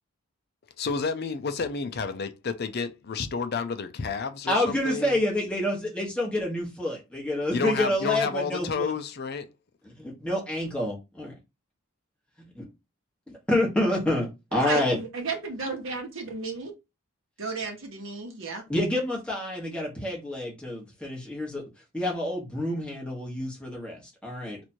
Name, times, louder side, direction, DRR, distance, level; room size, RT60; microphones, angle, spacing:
voice 1, 0.8-5.2 7.5-9.5, left 5 dB, 45° left, 0.4 m, -30 dB
voice 2, 4.5-8.9 9.8-11.3 12.4-12.6 13.5-15.0 18.7-21.6 21.9-24.7, left 1 dB, 5° left, 1.3 m, -28 dB
voice 3, 14.5-16.7 17.4-18.6, right 4 dB, 65° right, 1.0 m, -33 dB
3.0 x 2.6 x 4.3 m
head